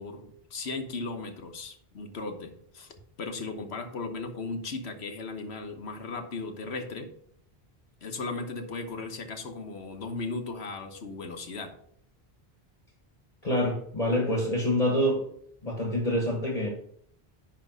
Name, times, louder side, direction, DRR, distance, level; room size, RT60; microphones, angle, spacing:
voice 1, 0.0-2.9 3.2-7.1 8.0-11.7, left 3 dB, 90° left, 5 dB, 1.4 m, -36 dB
voice 2, 13.4-15.2 15.6-16.7, equal, 40° left, 0 dB, 1.4 m, -26 dB
10.5 x 3.5 x 6.2 m, 0.66 s
omnidirectional pair, 1.1 m